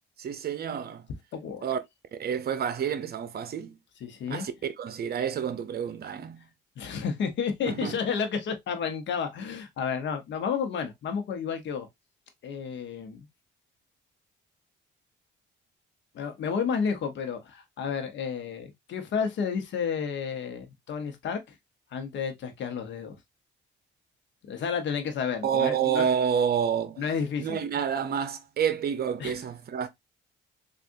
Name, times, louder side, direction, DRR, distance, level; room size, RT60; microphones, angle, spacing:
voice 1, 0.2-1.1 1.6-1.8 2.2-3.8 4.3-4.5 4.8-6.4 7.7-8.0 25.4-27.0 27.4-29.9, right 8 dB, 50° right, 0.7 m, -28 dB
voice 2, 1.3-1.7 4.0-4.4 6.8-11.9 12.4-13.3 16.1-21.6 21.9-23.2 24.4-26.1 27.0-27.6 29.2-29.4, left 6 dB, 65° left, 0.9 m, -31 dB
3.5 x 2.5 x 2.6 m
cardioid pair, 90°, 20 cm